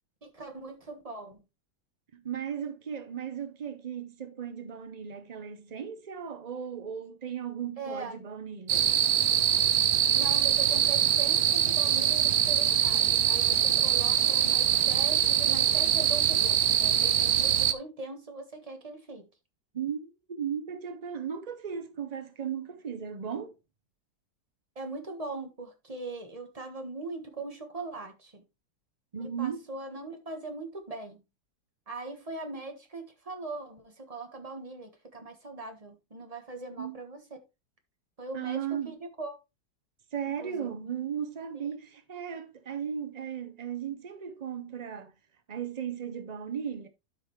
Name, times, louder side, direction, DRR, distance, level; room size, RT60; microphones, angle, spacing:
voice 1, 0.2-1.4 7.8-8.2 10.1-19.3 24.7-28.4 29.2-31.2 31.9-37.2 38.2-39.4 40.3-40.7, right 3 dB, 20° right, 1.4 m, -40 dB
voice 2, 2.1-9.0 19.7-23.5 29.1-29.6 36.8-37.0 38.3-39.0 40.1-45.1 45.5-46.9, right 8 dB, 85° right, 0.3 m, -36 dB
sound 1, 8.7-17.7, right 10 dB, 65° right, 1.1 m, -24 dB
12.5 x 5.0 x 3.1 m
omnidirectional pair, 1.9 m